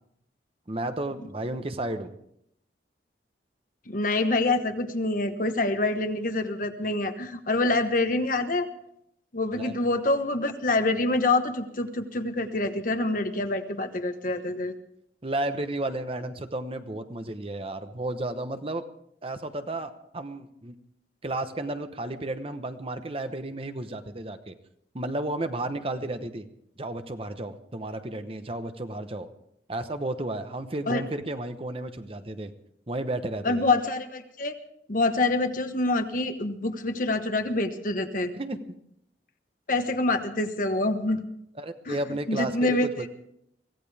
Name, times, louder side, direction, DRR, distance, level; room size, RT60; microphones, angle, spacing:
voice 1, 0.7-2.2 9.5-9.8 15.2-18.8 19.2-20.7 21.2-24.5 24.9-26.5 26.8-29.3 29.7-32.5 32.9-33.7 38.4-38.6 41.6-43.1, right 2 dB, 35° right, 9 dB, 1.0 m, -33 dB
voice 2, 3.9-8.7 9.3-14.7 30.9-31.0 33.4-34.5 34.9-38.3 39.7-41.2 41.9-42.0 42.3-43.0, left 2 dB, 50° left, 8 dB, 1.2 m, -26 dB
24.0 x 16.5 x 3.5 m, 0.74 s
head